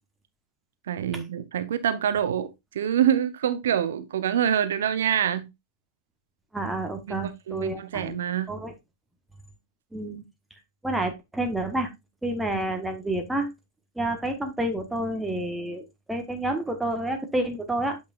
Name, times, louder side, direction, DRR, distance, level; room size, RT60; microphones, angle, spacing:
voice 1, 0.9-5.5 7.1-8.5, right 9 dB, 60° right, 0.7 m, -26 dB
voice 2, 6.5-8.2 8.5-8.7 9.9-10.2 10.8-11.9 12.2-13.5 14.0-18.0, right 1 dB, 5° right, 1.1 m, -29 dB
8.4 x 5.7 x 2.4 m
figure-of-eight pair, 90°, 0 cm